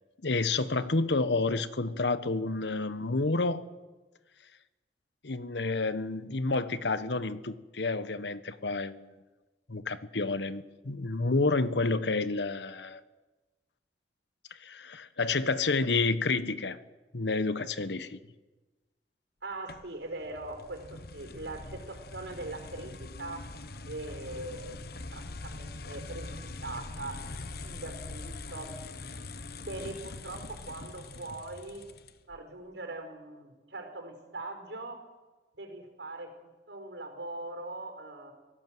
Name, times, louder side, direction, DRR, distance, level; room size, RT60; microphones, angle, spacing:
voice 1, 0.2-3.6 5.2-9.1 9.7-13.0 14.6-16.8 17.1-18.2, left 3 dB, 80° left, 1.1 m, -29 dB
voice 2, 19.4-23.4 23.8-24.8 25.1-27.2 27.6-28.7 29.5-31.8 32.3-35.0 35.5-38.3, right 2 dB, 90° right, 4.9 m, -41 dB
sound 1, 19.7-32.4, left 3 dB, 60° left, 1.2 m, -43 dB
25.0 x 17.5 x 7.8 m
head